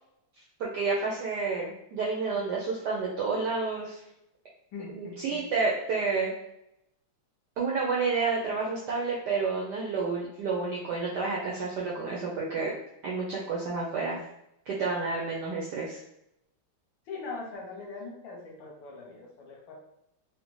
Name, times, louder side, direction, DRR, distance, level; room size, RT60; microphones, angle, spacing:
voice 1, 0.6-4.0 4.9-6.3 7.6-12.7 13.0-14.2 14.7-16.0, right 4 dB, 80° right, -3 dB, 0.9 m, -30 dB
voice 2, 4.7-5.4 17.1-19.8, left 4 dB, 70° left, -2 dB, 1.3 m, -41 dB
3.8 x 2.1 x 3.0 m, 0.82 s
omnidirectional pair, 2.4 m